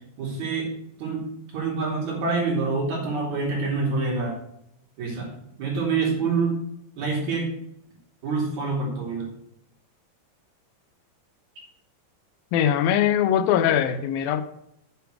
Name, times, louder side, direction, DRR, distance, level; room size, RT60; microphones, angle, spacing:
voice 1, 0.2-0.7 1.0-1.3 1.5-4.4 5.0-5.3 5.6-6.6 7.0-7.5 8.2-9.3, right 4 dB, 55° right, 4.0 m, -26 dB
voice 2, 12.5-14.4, left 10 dB, 85° left, 2.5 m, -21 dB
7.6 x 6.9 x 6.2 m
omnidirectional pair, 4.1 m